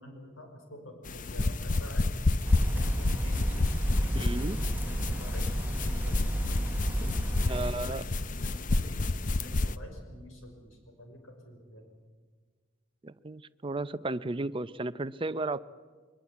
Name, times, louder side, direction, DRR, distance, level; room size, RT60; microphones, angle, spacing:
voice 1, 0.0-2.1 2.6-3.5 3.8-6.5 7.3-11.8, equal, 85° left, 3 dB, 5.8 m, -48 dB
sound 1, 1.1-9.7, left 2 dB, 40° left, 0.7 m, -30 dB
sound 2, 2.4-7.7, right 1 dB, 10° right, 1.4 m, -32 dB
voice 2, 4.1-4.6 7.5-8.0 13.0-15.6, right 2 dB, 25° right, 14 dB, 0.6 m, -34 dB
22.5 x 22.0 x 8.5 m, 1.5 s
head